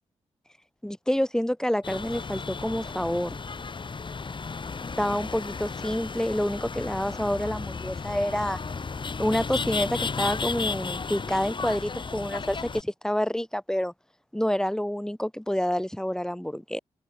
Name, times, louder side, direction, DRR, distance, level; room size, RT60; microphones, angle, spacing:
voice 1, 0.8-3.4 5.0-8.6 9.2-13.9 14.3-16.8, equal, 5° left, 7.9 m, -28 dB
sound 1, 1.8-12.8, left 4 dB, 40° left, 5.9 m, -34 dB
supercardioid pair, 60°, 12 cm